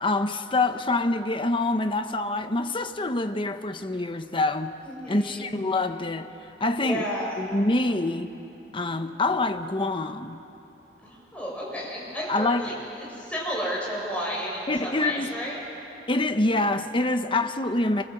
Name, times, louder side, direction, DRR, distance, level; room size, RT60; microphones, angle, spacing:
voice 1, 0.0-4.8 5.1-6.3 6.6-7.0 7.4-8.3 8.7-10.4 12.3-12.7 14.7-15.3 16.1-18.0, left 2 dB, 30° left, 1.0 m, -26 dB
voice 2, 4.8-5.5 6.8-7.4 11.0-15.6, equal, 5° left, 7.8 m, -32 dB
28.5 x 25.5 x 7.9 m
head